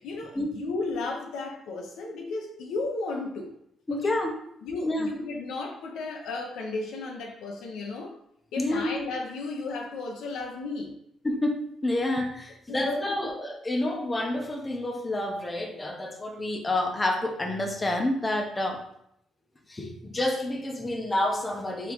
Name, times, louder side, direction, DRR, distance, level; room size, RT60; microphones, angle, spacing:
voice 1, 0.0-3.5 3.9-4.2 4.6-8.1 8.5-10.9 12.7-13.3, left 3 dB, 85° left, 2 dB, 0.7 m, -34 dB
voice 2, 3.9-4.3 4.8-5.1 8.6-9.0 11.2-18.8 19.7-21.9, left 1 dB, 20° left, 2 dB, 0.7 m, -29 dB
3.7 x 3.5 x 3.1 m, 0.75 s
cardioid pair, 90°, 0 cm